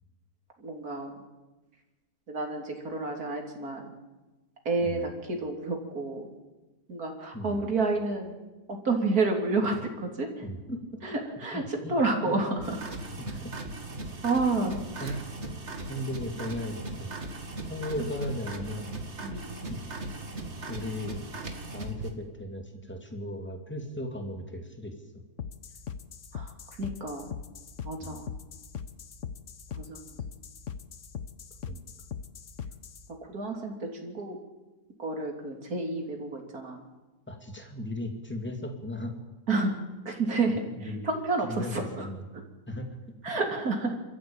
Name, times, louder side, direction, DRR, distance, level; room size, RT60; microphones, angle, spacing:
voice 1, 0.6-1.1 2.3-3.9 4.7-6.3 6.9-8.4 8.7-10.5 11.0-12.9 14.2-15.2 19.2-19.5 26.3-26.5 26.8-27.3 27.8-28.3 29.7-30.2 33.3-34.4 35.0-36.8 39.5-39.8 40.1-42.1 42.3-42.4 43.2-43.9, right 3 dB, 75° right, 2 dB, 3.7 m, -30 dB
voice 2, 7.3-7.7 10.4-10.8 11.5-12.0 12.3-12.4 13.2-13.5 15.0-15.2 15.9-17.1 17.7-18.9 19.7-19.8 20.7-21.2 21.7-24.9 28.0-28.2 31.6-31.8 37.3-39.1 40.7-41.0 41.4-42.3 42.7-43.0, left 1 dB, 5° left, 4 dB, 2.6 m, -36 dB
sound 1, 12.6-22.1, right 2 dB, 45° right, 2.3 m, -38 dB
sound 2, 25.4-33.1, left 7 dB, 55° left, 1.3 m, -40 dB
27.0 x 14.0 x 8.9 m, 1.1 s
omnidirectional pair, 1.6 m